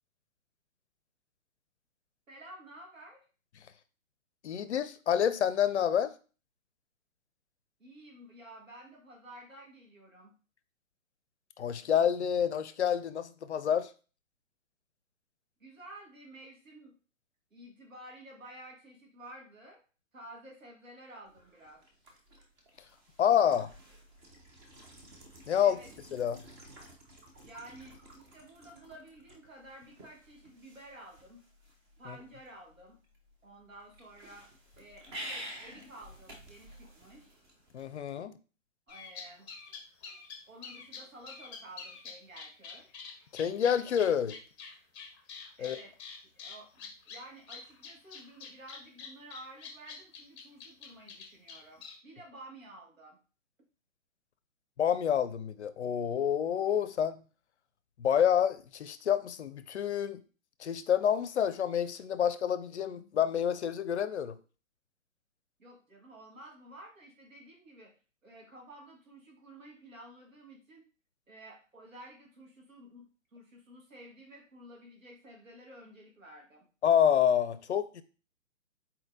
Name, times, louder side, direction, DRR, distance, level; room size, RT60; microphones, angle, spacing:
voice 1, 2.3-3.3 7.8-10.3 15.6-16.9 17.5-19.8 20.1-21.8 25.6-25.9 27.4-31.4 32.0-33.0 33.4-34.5 34.8-37.4 38.9-39.5 40.5-42.9 45.6-45.9 46.3-53.2 65.6-67.9 68.2-70.8 71.3-73.0 73.3-76.7, right 1 dB, 75° right, -1 dB, 1.7 m, -52 dB
voice 2, 4.4-6.1 11.6-13.9 23.2-23.7 25.5-25.8 26.1-26.4 32.1-32.2 37.7-38.3 43.3-44.4 45.6-45.8 54.8-57.2 58.0-60.2 60.6-64.4 76.8-78.0, left 9 dB, 60° left, 14 dB, 0.5 m, -28 dB
sound 1, 21.3-38.0, right 1 dB, 20° right, 0.7 m, -51 dB
sound 2, 38.9-51.9, left 6 dB, 20° left, 0.6 m, -46 dB
4.2 x 4.0 x 2.6 m, 0.36 s
figure-of-eight pair, 130°, 40 cm